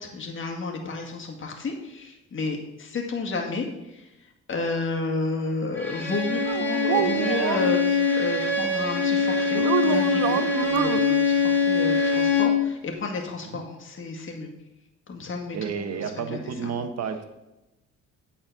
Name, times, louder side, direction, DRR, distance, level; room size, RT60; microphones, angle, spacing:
voice 1, 0.0-3.7 3.9-4.0 4.5-14.5 15.1-16.0 16.3-16.7, left 3 dB, 40° left, 1 dB, 1.9 m, -31 dB
Bowed string instrument, 5.7-12.7, left 4 dB, 5° left, 2.1 m, -23 dB
sound 1, 6.5-7.8 9.5-11.0, right 12 dB, 80° right, 0.5 m, -27 dB
voice 2, 15.5-17.2, right 6 dB, 55° right, 8 dB, 1.1 m, -31 dB
8.7 x 4.3 x 6.7 m, 0.95 s
cardioid pair, 90°, 30 cm